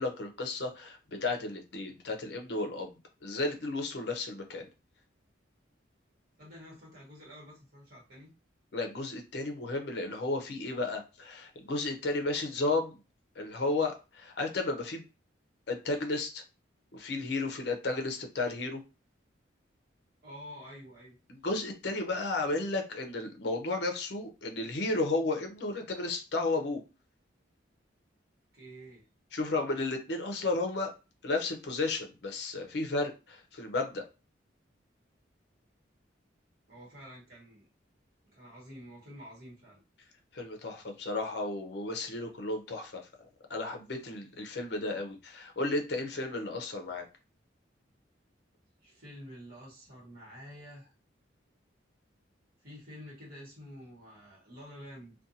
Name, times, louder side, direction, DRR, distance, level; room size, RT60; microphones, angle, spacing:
voice 1, 0.0-3.0 3.2-4.6 8.7-13.0 13.4-15.0 15.7-16.4 16.9-18.8 21.3-26.8 29.3-30.9 31.2-34.0 40.3-43.0 43.5-47.0, left 2 dB, 60° left, 4 dB, 0.5 m, -33 dB
voice 2, 6.4-8.3 20.2-21.2 28.5-29.0 36.7-37.7 38.3-39.8 48.8-50.9 52.6-55.1, equal, 50° right, -4 dB, 1.2 m, -49 dB
2.5 x 2.2 x 2.6 m, 0.30 s
head